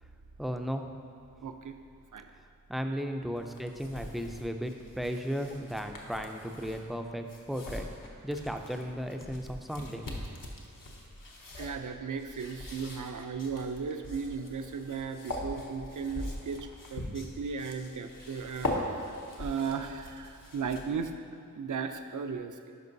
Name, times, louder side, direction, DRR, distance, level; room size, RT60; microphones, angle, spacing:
voice 1, 0.4-0.9 2.3-2.4 2.7-10.1, equal, ahead, 5 dB, 0.4 m, -35 dB
voice 2, 1.4-1.7 2.1-2.3 11.6-21.2 21.5-22.7, right 5 dB, 65° right, 7 dB, 0.5 m, -36 dB
sound 1, 3.4-21.1, left 1 dB, 75° left, 0.9 m, -41 dB
10.5 x 5.2 x 2.7 m, 2.6 s
wide cardioid pair, 80°, 33 cm